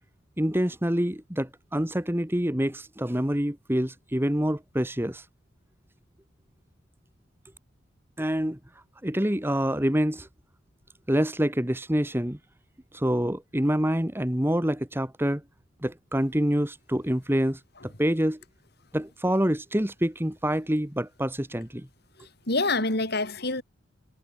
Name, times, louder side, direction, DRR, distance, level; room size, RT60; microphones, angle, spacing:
voice 1, 0.4-5.2 8.2-8.6 9.0-10.3 11.1-12.4 12.9-15.4 15.8-18.4 18.9-21.9, equal, 10° right, 1.6 m, -26 dB
voice 2, 22.2-23.6, left 2 dB, 55° left, 5.4 m, -27 dB
head